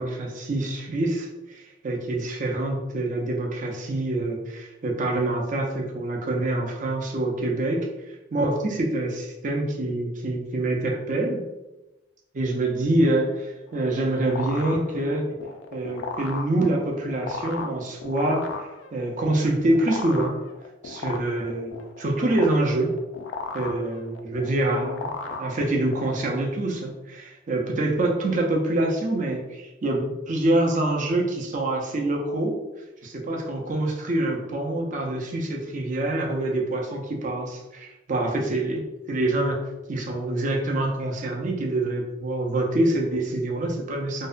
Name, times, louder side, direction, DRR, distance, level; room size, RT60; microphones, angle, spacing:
voice 1, 0.0-7.9 8.3-11.4 12.3-15.3 15.7-20.4 20.8-21.7 22.0-22.9 23.5-32.5 33.0-39.6 39.9-44.3, right 2 dB, 45° right, 0 dB, 0.5 m, -26 dB
sound 1, 13.7-26.1, left 4 dB, 80° left, 0.3 m, -36 dB
2.6 x 2.1 x 2.4 m, 1.0 s
head